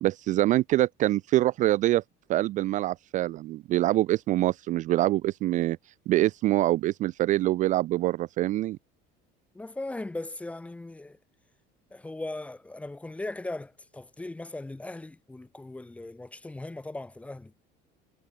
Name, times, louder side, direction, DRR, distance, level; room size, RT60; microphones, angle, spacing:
voice 1, 0.0-2.0 2.3-5.8 6.1-8.8, right 15 dB, 40° right, 0.4 m, -25 dB
voice 2, 9.5-11.2 11.9-17.5, left 2 dB, 5° left, 0.9 m, -38 dB
cardioid pair, 170°, 21 cm